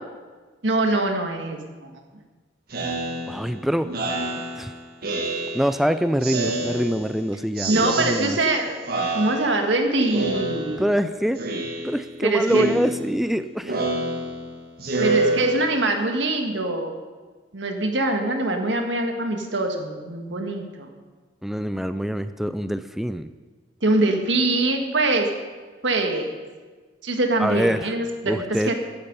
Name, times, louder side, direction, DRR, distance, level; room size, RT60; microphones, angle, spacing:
voice 1, 0.6-1.9 7.7-8.8 9.1-10.8 12.2-12.7 15.0-16.9 17.5-20.9 23.8-25.3 25.8-26.3 27.0-28.7, right 2 dB, 90° right, 4 dB, 1.8 m, -23 dB
Speech synthesizer, 2.7-5.9 6.2-7.2 7.6-8.6 8.9-9.8 10.1-11.0 11.4-12.2 12.5-16.0, right 2 dB, 55° right, 1.8 m, -28 dB
voice 2, 3.3-3.9 4.6-4.7 5.5-8.4 10.8-11.4 11.8-13.8 21.4-23.3 27.4-27.9 28.3-28.7, equal, ahead, 11 dB, 0.3 m, -25 dB
14.0 x 9.5 x 5.4 m, 1.4 s
head